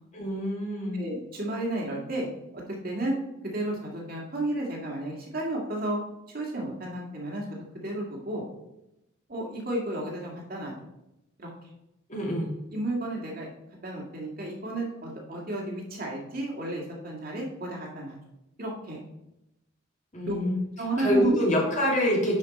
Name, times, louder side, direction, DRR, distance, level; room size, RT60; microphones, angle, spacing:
voice 1, 0.1-1.0 12.1-12.5 20.1-20.6 21.0-22.4, equal, 35° left, -3 dB, 2.4 m, -26 dB
voice 2, 0.9-2.3 2.5-3.1 3.5-6.0 6.3-7.6 7.8-8.4 9.3-10.7 11.4-11.5 12.7-13.5 13.8-18.2 18.6-19.0 20.3-20.4 20.8-21.4, right 1 dB, 50° right, -1 dB, 2.0 m, -32 dB
10.5 x 5.0 x 4.2 m, 0.88 s
head